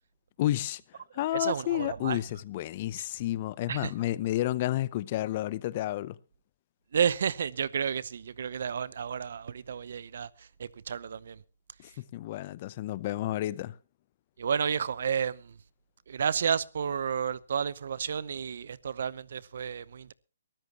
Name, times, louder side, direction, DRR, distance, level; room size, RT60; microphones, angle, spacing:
voice 1, 0.4-0.8 1.1-6.2 11.8-13.7, left 14 dB, 35° left, 0.6 m, -31 dB
voice 2, 1.3-2.2 3.0-3.1 3.7-3.9 6.9-11.4 14.4-15.6 16.1-20.1, right 7 dB, 60° right, 0.8 m, -31 dB
23.0 x 13.5 x 2.9 m
hypercardioid pair, 155°, 0 cm